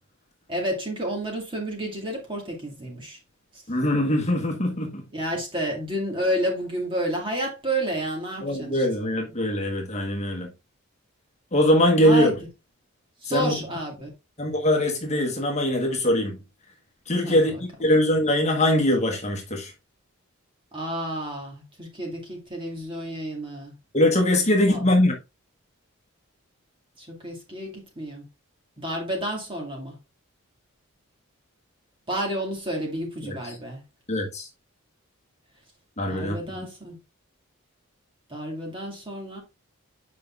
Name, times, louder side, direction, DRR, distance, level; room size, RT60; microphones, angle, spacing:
voice 1, 0.5-3.2 5.1-8.9 12.0-12.4 13.2-14.1 17.2-17.6 20.7-23.7 24.7-24.8 27.0-28.2 28.8-29.9 32.1-33.8 36.1-37.0 38.3-39.4, right 1 dB, 20° right, 2.1 m, -30 dB
voice 2, 3.7-5.1 8.4-10.5 11.5-12.3 13.3-13.6 14.4-16.4 17.1-19.7 23.9-25.1 33.2-33.4 34.1-34.5 36.0-36.7, left 1 dB, 30° left, 1.4 m, -22 dB
8.0 x 5.2 x 2.5 m
head